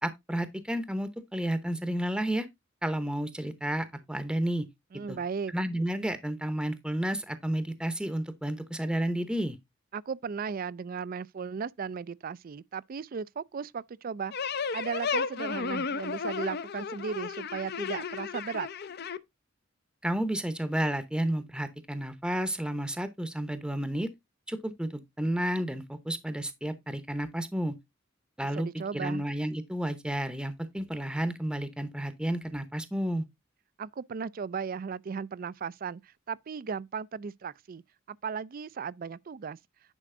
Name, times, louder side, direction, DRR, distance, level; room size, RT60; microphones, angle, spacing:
voice 1, 0.0-2.5 2.8-4.7 5.1-5.2 5.5-9.6 20.0-24.1 24.5-27.7 28.4-28.7 28.9-33.3, right 1 dB, 5° right, 0.8 m, -31 dB
voice 2, 4.9-5.5 9.9-14.3 14.7-18.7 28.5-29.2 33.8-37.8 38.1-39.6, right 6 dB, 45° right, 0.4 m, -36 dB
sound 1, 14.3-19.2, left 5 dB, 50° left, 0.6 m, -33 dB
10.0 x 5.0 x 3.7 m
head